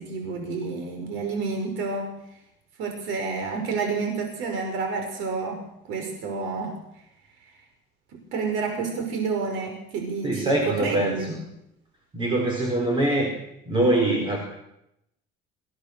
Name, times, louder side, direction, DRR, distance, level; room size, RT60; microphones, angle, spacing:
voice 1, 0.0-2.1 2.8-6.8 8.1-11.4, right 4 dB, 80° right, 3 dB, 5.2 m, -29 dB
voice 2, 10.2-11.4 12.1-13.3 13.7-14.4, right 1 dB, 25° right, 1 dB, 4.7 m, -23 dB
26.0 x 17.0 x 6.8 m, 0.82 s
cardioid pair, 145°, 20 cm